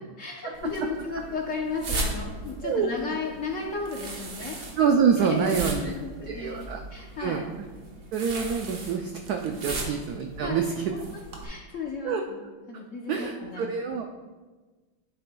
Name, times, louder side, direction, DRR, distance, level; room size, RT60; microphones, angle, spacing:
voice 1, 0.0-4.6 5.2-7.5 9.7-9.8 10.4-12.4 12.7-13.8, left 3 dB, 55° left, -1 dB, 0.9 m, -35 dB
sound 1, 0.5-11.4, right 2 dB, 50° right, 1.3 m, -37 dB
voice 2, 4.8-5.9 6.3-6.8 7.2-7.4 8.1-10.7 12.0-12.2 12.7-12.8 13.1-14.1, right 6 dB, 85° right, 4 dB, 0.8 m, -26 dB
9.4 x 7.7 x 2.3 m, 1.3 s
omnidirectional pair, 2.2 m